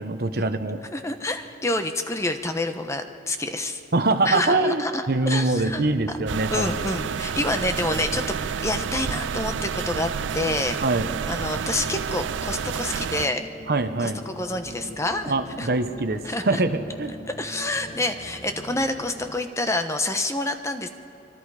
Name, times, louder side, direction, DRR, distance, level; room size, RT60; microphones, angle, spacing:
voice 1, 0.0-0.8 3.9-6.7 10.8-11.1 13.7-14.2 15.3-17.1, right 2 dB, 60° right, 9 dB, 1.0 m, -24 dB
voice 2, 0.9-3.8 4.3-5.9 6.5-8.2 8.6-10.8 11.3-13.5 14.0-15.3 15.6-15.7 16.2-16.6 17.4-20.9, left 2 dB, 15° left, 7 dB, 1.0 m, -27 dB
sound 1, 5.5-19.3, equal, 60° left, 2.1 m, -42 dB
sound 2, 6.3-13.3, right 7 dB, 80° right, 0.4 m, -30 dB
25.5 x 24.0 x 4.9 m, 2.7 s
head